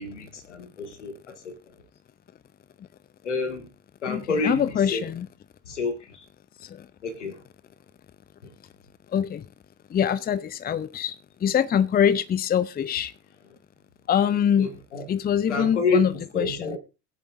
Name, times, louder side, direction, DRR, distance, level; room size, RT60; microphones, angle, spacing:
voice 1, 0.0-1.8 3.2-3.7 4.0-5.0 5.7-6.3 7.0-7.4 8.4-8.5 14.6-15.1 15.5-16.8, left 3 dB, 85° left, 2.1 m, -29 dB
voice 2, 4.1-5.3 6.6-6.9 9.1-9.5 9.9-13.1 14.1-14.7 15.1-16.8, left 8 dB, 25° left, 0.7 m, -24 dB
23.0 x 8.2 x 2.6 m
figure-of-eight pair, 65°, 35 cm